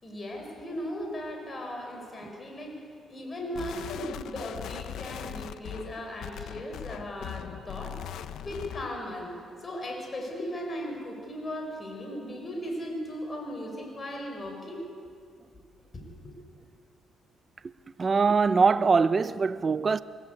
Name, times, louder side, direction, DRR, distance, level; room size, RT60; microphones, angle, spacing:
voice 1, 0.0-14.8 15.9-16.4, equal, 30° left, 6.0 m, -37 dB
sound 1, 3.6-9.0, left 10 dB, 75° left, 0.8 m, -40 dB
voice 2, 18.0-20.0, right 5 dB, 35° right, 0.7 m, -22 dB
24.0 x 21.5 x 8.5 m
cardioid pair, 90°, 0 cm